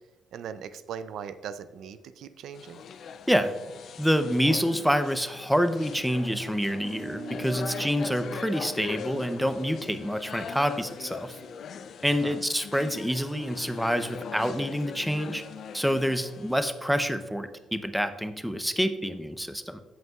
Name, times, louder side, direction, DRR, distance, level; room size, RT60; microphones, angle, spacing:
voice 1, 0.3-2.8 12.2-12.4, right 8 dB, 75° right, 12 dB, 0.4 m, -39 dB
sound 1, 2.5-16.6, left 6 dB, 65° left, 0.4 m, -41 dB
voice 2, 4.0-11.4 12.0-15.4 15.7-19.8, equal, ahead, 10 dB, 0.6 m, -27 dB
sound 2, 6.7-11.5, right 1 dB, 40° left, 2.5 m, -42 dB
15.0 x 5.4 x 2.3 m, 1.2 s
cardioid pair, 90°, 0 cm